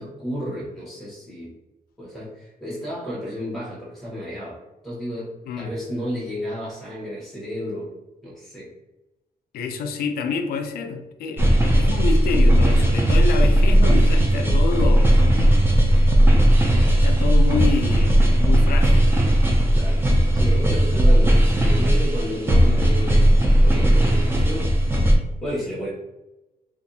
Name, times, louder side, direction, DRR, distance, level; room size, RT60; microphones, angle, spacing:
voice 1, 0.0-1.6 2.0-4.6 4.8-7.9 8.2-8.7 14.4-14.6 19.7-20.0 20.3-23.2 23.6-24.7 25.4-25.9, equal, ahead, -6 dB, 1.2 m, -32 dB
voice 2, 9.5-15.3 16.9-19.1, left 4 dB, 85° left, 6 dB, 0.4 m, -28 dB
sound 1, 11.4-25.2, right 1 dB, 15° right, 0.4 m, -17 dB
2.6 x 2.3 x 2.6 m, 1.0 s
cardioid pair, 140°, 15 cm